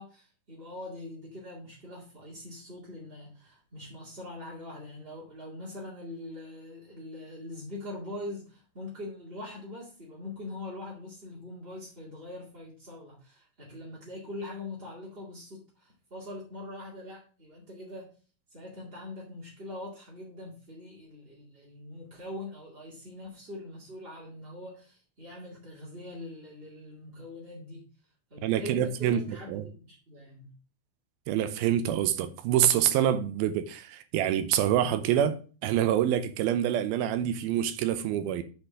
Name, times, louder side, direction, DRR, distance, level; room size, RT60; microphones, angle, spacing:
voice 1, 0.0-18.1 18.5-27.8 28.3-30.5, left 1 dB, 25° right, 1.4 m, -43 dB
voice 2, 28.4-29.2 29.5-29.6 31.3-38.4, right 10 dB, 85° right, 2.6 m, -26 dB
8.0 x 4.4 x 6.2 m
omnidirectional pair, 4.2 m